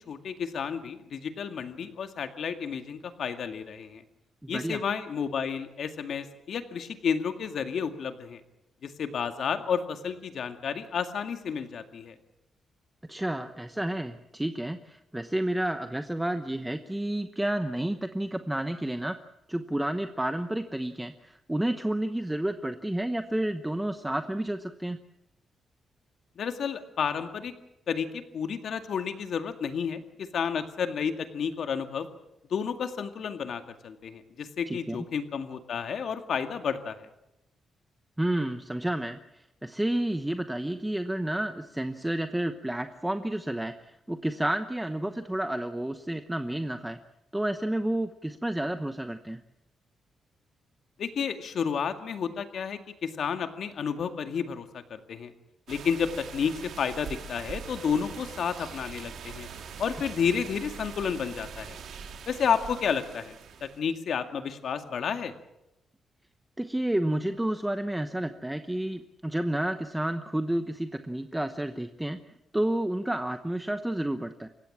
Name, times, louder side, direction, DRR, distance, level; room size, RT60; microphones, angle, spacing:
voice 1, 0.0-4.0 4.5-8.4 8.8-12.2 26.4-27.5 27.9-32.1 32.5-37.1 51.0-55.3 55.7-59.5 59.8-61.8 62.3-63.3 63.6-65.3, left 7 dB, 60° left, 7 dB, 2.1 m, -31 dB
voice 2, 4.4-4.8 13.1-19.2 19.5-25.0 34.7-35.0 38.2-47.0 47.3-49.4 66.6-72.2 72.5-74.5, right 1 dB, 5° right, 8 dB, 0.9 m, -30 dB
sound 1, 55.7-63.8, right 6 dB, 75° right, 2.8 m, -43 dB
28.5 x 16.0 x 7.4 m, 0.87 s
cardioid pair, 135°, 0 cm